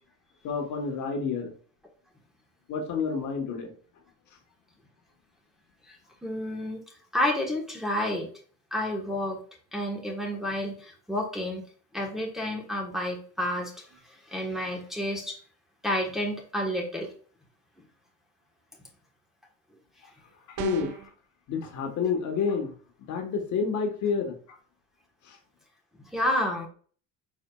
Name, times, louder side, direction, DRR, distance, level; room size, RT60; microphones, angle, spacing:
voice 1, 0.4-1.5 2.7-3.7 20.6-21.0 21.5-22.7 23.1-24.6 25.3-25.4, left 5 dB, 55° left, 3 dB, 1.3 m, -29 dB
voice 2, 6.2-6.8 7.1-8.3 8.7-9.4 9.7-11.6 11.9-13.7 14.3-15.4 15.8-17.1 26.1-26.7, left 1 dB, ahead, -2 dB, 1.3 m, -30 dB
sound 1, 20.6-21.1, right 13 dB, 65° right, 0.5 m, -35 dB
4.8 x 4.2 x 2.3 m, 0.43 s
supercardioid pair, 95°, 34 cm